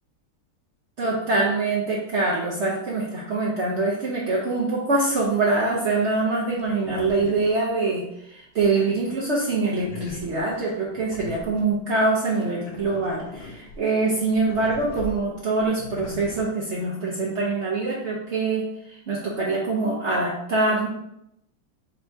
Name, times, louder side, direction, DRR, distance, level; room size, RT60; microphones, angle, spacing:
voice 1, 1.0-20.9, right 3 dB, 70° right, -5 dB, 0.6 m, -24 dB
sound 1, 5.2-5.3 6.6-8.1 8.6-11.8 12.4-16.4, left 1 dB, 75° left, 1.4 m, -40 dB
4.4 x 2.7 x 4.5 m, 0.80 s
omnidirectional pair, 2.2 m